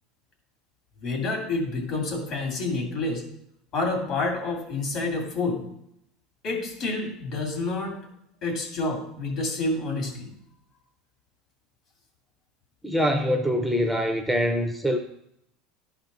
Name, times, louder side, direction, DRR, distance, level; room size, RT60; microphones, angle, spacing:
voice 1, 1.0-3.2 3.7-5.7 6.4-8.0 8.4-10.3, left 2 dB, 50° left, 1 dB, 2.6 m, -28 dB
voice 2, 12.8-15.0, equal, ahead, 4 dB, 0.6 m, -24 dB
12.0 x 4.3 x 4.0 m, 0.76 s
supercardioid pair, 135°, 0 cm